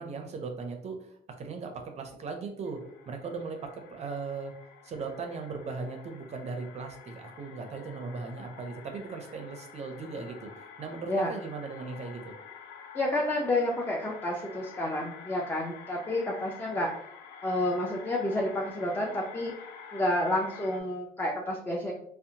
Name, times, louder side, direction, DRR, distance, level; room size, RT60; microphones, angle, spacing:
voice 1, 0.0-2.8 3.1-4.5 4.8-10.5 10.8-12.3, right 4 dB, 40° right, 4 dB, 0.5 m, -38 dB
sound 1, 2.6-20.8, left 7 dB, 85° left, 0.4 m, -49 dB
voice 2, 12.9-16.9 17.4-21.9, left 1 dB, 10° left, -1 dB, 0.4 m, -30 dB
2.7 x 2.0 x 2.7 m, 0.69 s
cardioid pair, 110°, 17 cm